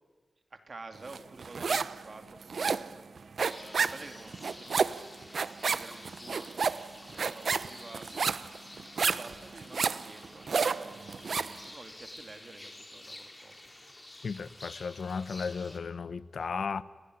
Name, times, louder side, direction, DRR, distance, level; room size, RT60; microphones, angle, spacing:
voice 1, 0.5-4.8 5.4-8.8 9.0-13.5, right 3 dB, 45° right, 7 dB, 2.9 m, -50 dB
sound 1, 1.1-2.0 2.3-11.6, right 5 dB, 70° right, 0.9 m, -31 dB
sound 2, 3.4-15.8, left 1 dB, 20° left, 3.6 m, -50 dB
voice 2, 14.2-16.8, left 5 dB, 75° left, 16 dB, 1.0 m, -35 dB
30.0 x 18.5 x 9.8 m, 1.5 s
wide cardioid pair, 100°, 0 cm